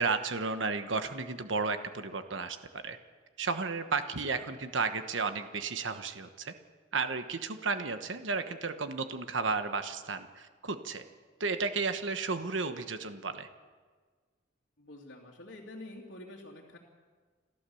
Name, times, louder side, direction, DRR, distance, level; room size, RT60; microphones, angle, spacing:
voice 1, 0.0-2.6 2.8-3.0 3.4-6.5 6.9-11.0 11.4-13.5, right 4 dB, 80° right, 8 dB, 1.2 m, -33 dB
voice 2, 14.8-16.8, left 1 dB, 80° left, -3 dB, 2.7 m, -47 dB
29.0 x 13.5 x 7.1 m, 1.5 s
head